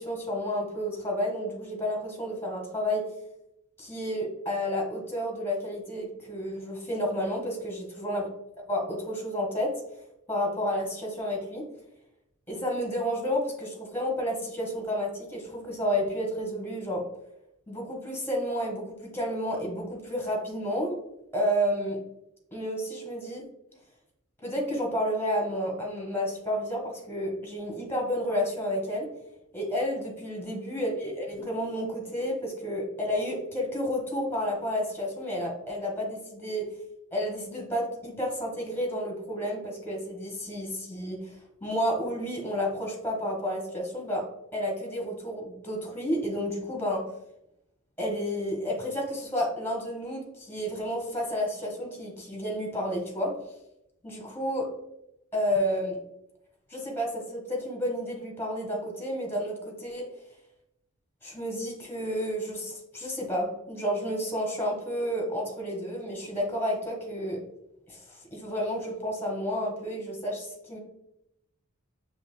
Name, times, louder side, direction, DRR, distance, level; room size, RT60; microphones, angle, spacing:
voice 1, 0.0-3.1 3.8-8.3 8.7-9.7 10.3-11.6 12.5-17.0 17.7-21.0 21.3-22.0 22.5-23.4 24.4-29.1 29.5-36.7 37.1-41.3 41.6-44.3 44.5-47.0 48.0-53.4 54.0-54.7 55.3-56.0 56.7-60.1 61.2-67.4 67.9-70.8, equal, 10° left, -2 dB, 1.2 m, -31 dB
6.4 x 3.1 x 2.2 m, 0.82 s
head